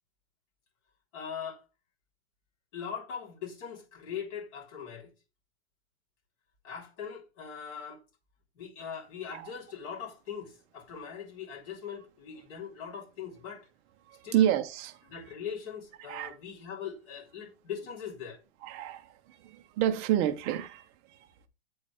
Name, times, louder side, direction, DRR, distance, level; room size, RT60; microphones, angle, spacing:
voice 1, 1.1-1.6 2.7-5.1 6.6-8.0 8.5-13.7 14.2-14.5 15.1-18.4, left 7 dB, 30° left, 3.4 m, -41 dB
voice 2, 14.1-15.0 16.1-16.3 18.6-21.5, right 11 dB, 20° right, 0.6 m, -30 dB
8.6 x 4.0 x 3.3 m
hypercardioid pair, 165°, 31 cm